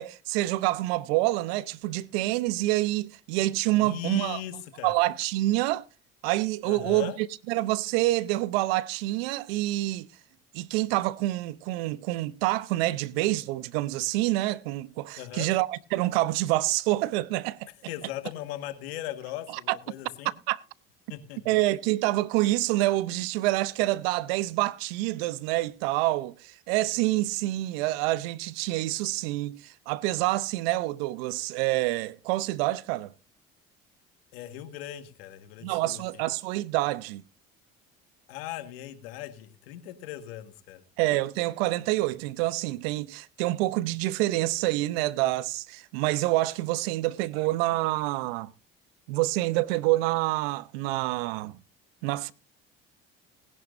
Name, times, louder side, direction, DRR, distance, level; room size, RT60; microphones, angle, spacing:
voice 1, 0.0-4.4 4.8-5.9 6.2-10.1 10.5-17.7 19.7-19.8 20.5-20.6 21.5-33.1 35.6-37.2 41.0-48.5 49.1-51.6 52.0-52.3, right 18 dB, 85° right, 0.8 m, -27 dB
voice 2, 3.7-4.9 6.6-7.2 15.1-15.5 17.9-20.3 21.1-21.5 34.3-36.2 38.3-40.8, left 12 dB, 85° left, 1.7 m, -38 dB
19.5 x 11.0 x 2.6 m
supercardioid pair, 75°, 29 cm